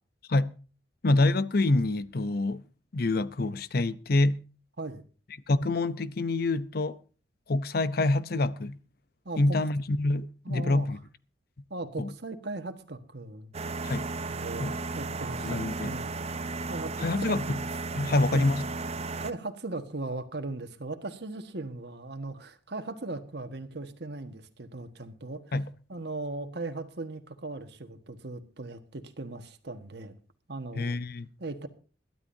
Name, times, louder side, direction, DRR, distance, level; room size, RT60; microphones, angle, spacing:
voice 1, 1.0-2.6 2.9-4.5 5.5-7.0 7.5-8.8 9.4-11.0 12.0-12.1 13.8-14.1 14.6-14.8 15.4-16.0 17.0-17.6 17.9-18.7 25.5-25.7 30.8-31.3, left 2 dB, 55° left, 0.7 m, -26 dB
voice 2, 9.2-9.6 10.4-10.9 11.7-13.5 14.3-14.7 14.9-16.1 16.7-17.0 18.0-18.5 19.2-25.4 25.9-30.1 30.5-30.9 31.4-31.7, right 2 dB, 60° right, 1.5 m, -38 dB
sound 1, 13.5-19.3, right 3 dB, 35° right, 0.6 m, -34 dB
21.5 x 12.5 x 2.7 m
head